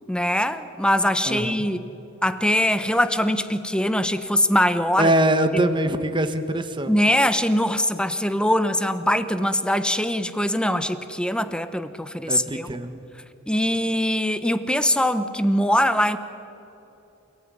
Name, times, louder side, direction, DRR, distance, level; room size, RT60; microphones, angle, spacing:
voice 1, 0.1-1.9 2.2-5.1 5.5-5.7 6.9-12.7 13.5-16.2, left 1 dB, 5° left, 11 dB, 1.1 m, -22 dB
voice 2, 1.3-1.7 5.0-6.9 12.3-13.0, right 1 dB, 25° right, 8 dB, 1.3 m, -23 dB
29.0 x 18.0 x 9.8 m, 2.9 s
head